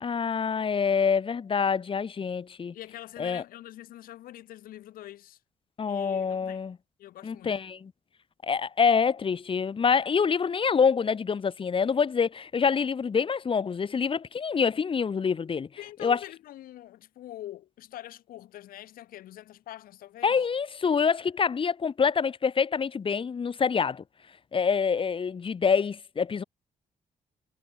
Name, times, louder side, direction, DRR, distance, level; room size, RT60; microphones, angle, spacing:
voice 1, 0.0-2.8 3.2-3.4 5.8-6.8 7.2-7.9 8.4-15.7 16.0-16.2 20.2-24.0 24.5-26.4, left 6 dB, 40° left, 0.9 m, -26 dB
voice 2, 2.7-5.4 5.9-6.6 7.0-7.5 15.8-20.5, left 13 dB, 85° left, 5.6 m, -44 dB
cardioid pair, 70°, 14 cm